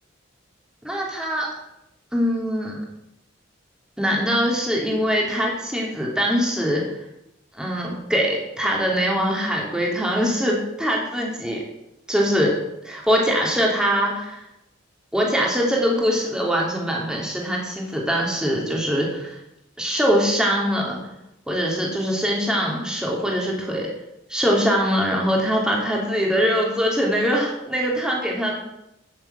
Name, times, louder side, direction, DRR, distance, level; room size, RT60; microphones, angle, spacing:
voice 1, 0.8-1.5 2.1-2.8 4.0-6.8 7.6-11.6 12.1-12.6 12.8-14.4 15.1-19.4 19.8-21.0 21.5-23.9 24.3-28.5, equal, 5° right, -2 dB, 3.1 m, -22 dB
13.5 x 7.6 x 8.3 m, 0.84 s
head